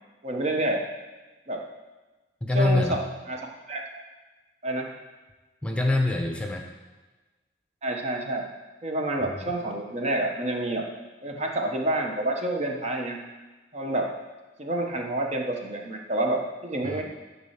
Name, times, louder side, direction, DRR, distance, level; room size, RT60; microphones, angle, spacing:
voice 1, 0.2-0.8 1.5-1.6 2.5-3.0 3.3-3.4 3.7-3.8 4.6-4.9 7.8-8.4 8.8-10.8 11.2-13.2 13.7-14.1 14.6-17.0, right 1 dB, 40° right, 1 dB, 1.1 m, -28 dB
voice 2, 2.4-3.0 5.6-6.6 9.3-9.5 16.8-17.0, left 2 dB, 5° left, 2 dB, 0.8 m, -25 dB
12.0 x 4.3 x 5.8 m, 1.2 s
head